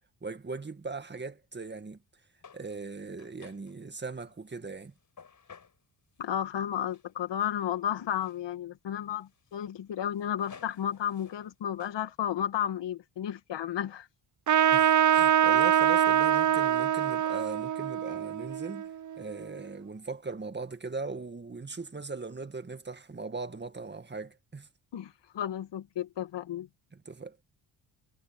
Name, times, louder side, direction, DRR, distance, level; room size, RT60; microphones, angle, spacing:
voice 1, 0.2-2.0 2.5-4.9 14.7-24.7 26.9-27.4, right 4 dB, 25° right, 1.9 m, -39 dB
sound 1, 2.4-3.8 4.3-5.8 6.2-6.5 6.8-7.8 8.1-8.4 8.9-11.5 11.8-12.0, left 6 dB, 45° left, 4.8 m, -55 dB
voice 2, 6.2-14.1 24.9-26.7, left 10 dB, 70° left, 1.9 m, -33 dB
Trumpet, 14.5-19.5, right 10 dB, 45° right, 0.7 m, -24 dB
cardioid pair, 95°, 44 cm